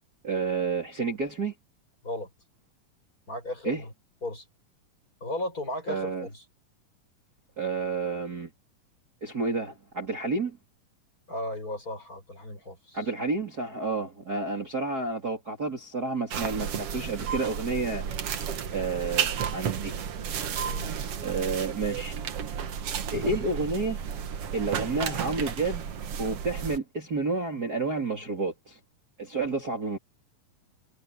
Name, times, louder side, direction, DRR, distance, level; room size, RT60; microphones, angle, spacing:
voice 1, 0.2-1.5 3.6-3.8 5.9-6.3 7.6-8.5 9.2-10.6 12.9-18.0 18.7-19.9 21.2-22.2 23.1-24.0 24.5-25.9 26.2-28.8 29.2-30.0, right 3 dB, 25° right, 3.6 m, -30 dB
voice 2, 3.3-3.9 4.2-4.4 5.2-6.4 11.3-13.0 20.6-21.0, left 1 dB, 25° left, 7.3 m, -35 dB
sound 1, 16.3-26.8, right 8 dB, 55° right, 2.0 m, -32 dB
omnidirectional pair, 4.0 m